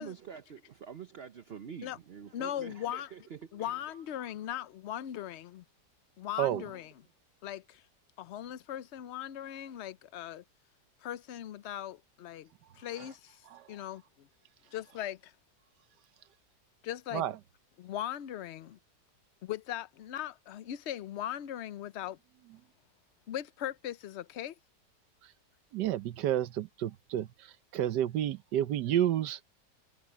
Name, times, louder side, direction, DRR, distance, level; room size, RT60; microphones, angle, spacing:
voice 1, 0.0-4.0, right 7 dB, 50° right, 0.8 m, -47 dB
voice 2, 2.3-3.1 3.5-5.6 6.2-6.9 7.4-7.8 8.2-10.4 11.0-12.5 12.7-14.3 14.7-15.3 16.8-17.3 17.8-18.8 19.4-22.2 23.3-24.5, left 11 dB, 65° left, 0.7 m, -39 dB
voice 3, 25.7-29.4, right 11 dB, 80° right, 1.4 m, -30 dB
omnidirectional pair, 1.8 m